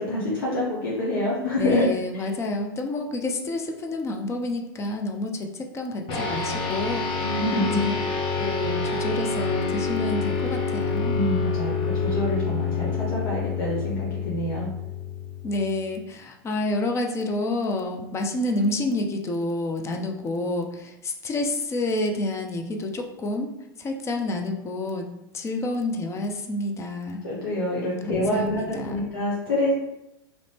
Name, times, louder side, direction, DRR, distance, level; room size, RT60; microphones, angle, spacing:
voice 1, 0.0-2.3 7.2-7.8 11.1-14.7 27.2-29.7, left 1 dB, 65° left, -5 dB, 0.9 m, -26 dB
voice 2, 1.6-7.1 7.8-7.9 8.4-11.2 15.4-23.5 23.8-25.1 25.3-27.2 28.1-29.1, left 2 dB, 25° left, 3 dB, 0.5 m, -29 dB
sound 1, 6.1-15.8, left 4 dB, 40° left, 1.0 m, -27 dB
3.0 x 2.6 x 3.4 m, 0.89 s
hypercardioid pair, 95°, 12 cm